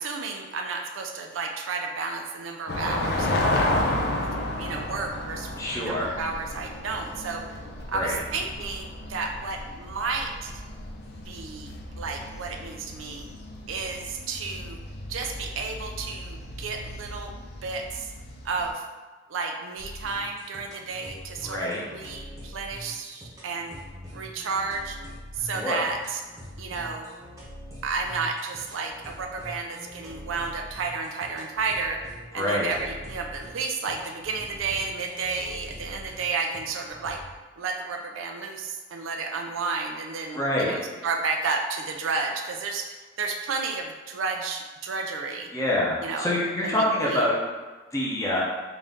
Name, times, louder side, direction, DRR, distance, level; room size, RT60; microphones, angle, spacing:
voice 1, 0.0-3.5 4.2-4.3 4.6-7.4 7.9-10.6 11.3-13.3 13.7-14.8 15.1-17.3 17.6-18.1 18.4-18.8 19.3-23.8 24.1-25.0 25.3-26.2 26.6-27.1 27.8-32.0 32.3-37.2 37.6-45.5 46.0-46.3 46.6-46.8 47.0-47.3, right 4 dB, 85° right, 3 dB, 0.4 m, -32 dB
sound 1, 2.7-18.7, left 1 dB, 55° left, 0.5 m, -33 dB
voice 2, 5.6-6.1 7.9-8.2 21.4-21.8 25.5-25.8 32.3-32.7 40.3-40.8 45.5-47.3 47.9-48.4, left 1 dB, 15° left, -5 dB, 0.7 m, -26 dB
sound 2, 19.8-37.3, equal, 15° right, 0.9 m, -44 dB
4.0 x 2.5 x 3.4 m, 1.3 s
head